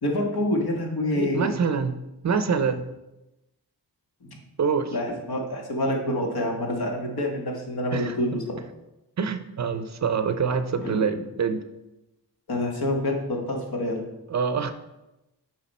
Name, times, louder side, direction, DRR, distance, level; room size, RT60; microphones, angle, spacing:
voice 1, 0.0-1.5 4.2-4.4 4.9-8.6 10.8-11.0 12.5-14.0, left 1 dB, 65° left, 0 dB, 1.7 m, -27 dB
voice 2, 1.1-2.0 2.2-2.9 4.6-5.0 7.9-8.4 9.2-11.6 14.3-14.7, right 6 dB, 45° right, 10 dB, 0.6 m, -26 dB
7.3 x 4.8 x 4.2 m, 0.97 s
cardioid pair, 80°, 40 cm